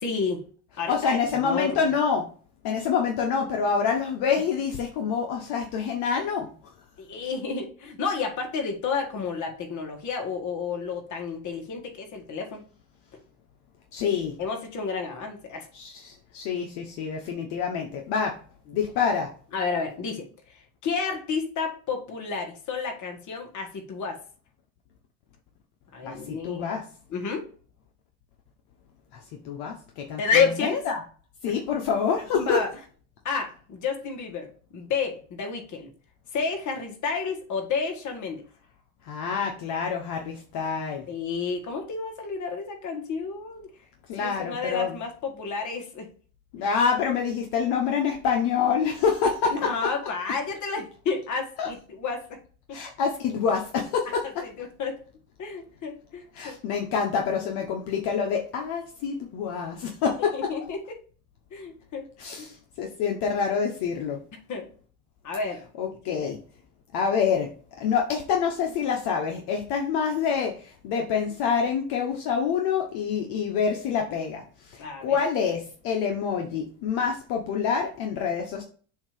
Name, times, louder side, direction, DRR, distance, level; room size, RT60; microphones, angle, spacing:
voice 1, 0.0-0.5 0.8-1.9 7.0-12.6 14.4-15.7 18.7-18.8 19.5-24.2 25.9-26.7 27.1-27.5 30.2-30.9 31.5-31.6 32.3-32.7 33.2-35.9 36.3-38.4 41.1-43.7 44.2-46.1 47.1-47.2 49.5-52.4 52.7-52.8 54.4-55.0 55.4-56.6 60.3-61.0 61.5-62.1 62.4-62.5 64.5-64.7 65.2-65.6 66.1-66.3 74.8-75.2, left 5 dB, 45° left, 3 dB, 1.7 m, -30 dB
voice 2, 0.9-2.3 2.6-6.5 13.9-14.3 15.7-18.3 18.7-19.3 26.0-26.8 29.1-29.2 29.4-30.2 30.6-31.0 31.4-32.6 39.0-41.0 44.1-45.0 46.5-49.7 51.6-51.7 52.7-54.2 56.3-60.3 62.2-64.2 65.8-66.4 66.9-67.5 67.8-78.6, left 6 dB, 65° left, 1 dB, 1.1 m, -26 dB
7.0 x 2.8 x 5.0 m, 0.41 s
supercardioid pair, 110°, 40 cm